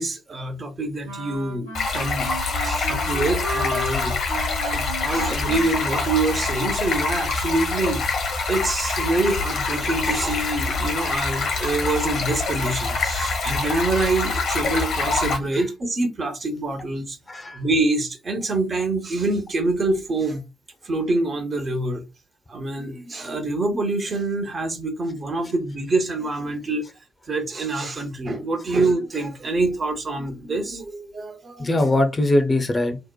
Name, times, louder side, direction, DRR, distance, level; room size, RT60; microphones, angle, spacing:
voice 1, 0.0-2.3 2.6-4.1 4.7-8.0 8.5-17.2 17.5-20.4 20.8-22.0 22.5-26.9 27.3-31.9, right 2 dB, 40° right, 0.7 m, -25 dB
sound 1, 1.0-6.7, right 1 dB, 90° right, 0.6 m, -34 dB
Stream, 1.7-15.4, left 3 dB, 55° left, 0.8 m, -25 dB
voice 2, 17.3-17.6 31.6-33.0, left 1 dB, 30° left, 0.5 m, -22 dB
2.8 x 2.1 x 2.2 m
figure-of-eight pair, 45°, 0 cm